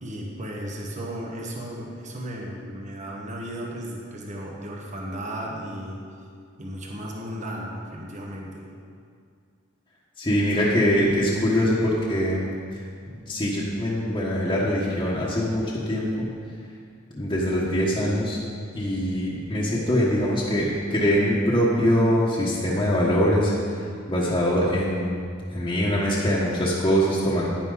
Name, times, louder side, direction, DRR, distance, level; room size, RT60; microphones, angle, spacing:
voice 1, 0.0-6.0 6.6-8.7, equal, 40° right, -2 dB, 1.4 m, -35 dB
voice 2, 10.2-12.5 13.1-16.3 17.1-18.4 18.7-25.2 25.5-27.5, equal, 20° left, -8 dB, 1.3 m, -23 dB
10.5 x 9.9 x 4.0 m, 2.2 s
head